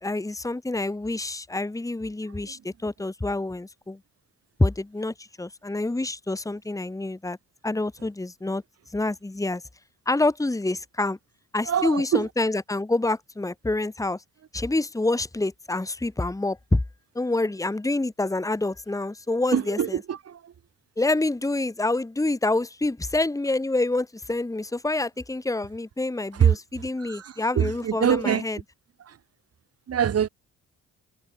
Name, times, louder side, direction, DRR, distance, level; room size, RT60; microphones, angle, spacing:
voice 1, 0.0-4.0 4.6-7.4 7.6-8.6 8.9-9.6 10.1-11.2 11.5-14.2 14.5-16.8 17.2-19.8 21.0-28.6, left 2 dB, 10° left, 2.1 m, -27 dB
voice 2, 11.6-12.3 19.5-20.5 26.3-26.6 27.0-28.4 29.0-29.2 29.9-30.3, right 8 dB, 55° right, 2.9 m, -24 dB
cardioid pair, 90°, 30 cm